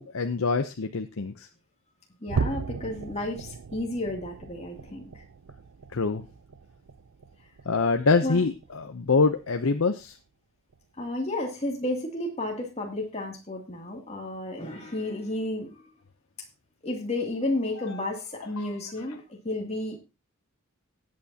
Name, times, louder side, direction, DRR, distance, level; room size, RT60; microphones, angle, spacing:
voice 1, 0.0-1.5 5.9-6.2 7.7-10.2 17.9-18.0 18.6-18.7, left 4 dB, 75° left, 7 dB, 0.7 m, -25 dB
voice 2, 2.2-5.1 8.2-8.4 11.0-15.9 16.8-20.0, left 1 dB, 30° left, 1 dB, 2.6 m, -32 dB
sound 1, 2.3-8.9 9.3-9.6 10.0-10.1 10.7-10.8, right 5 dB, 80° right, 0.5 m, -37 dB
18.0 x 8.6 x 2.8 m, 0.26 s
head